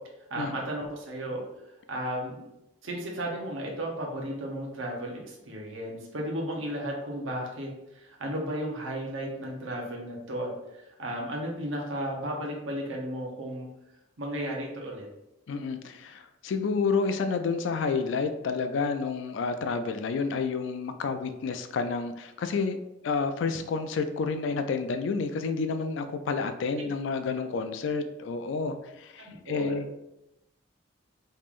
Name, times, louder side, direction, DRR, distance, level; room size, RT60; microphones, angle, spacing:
voice 1, 0.3-1.4 1.9-2.5 2.8-13.7 14.2-15.1 26.8-26.9 29.2-29.8, right 1 dB, 85° right, -1 dB, 0.8 m, -34 dB
voice 2, 15.5-22.8 23.0-29.9, left 4 dB, 70° left, 9 dB, 0.3 m, -30 dB
3.6 x 3.1 x 2.4 m, 0.89 s
head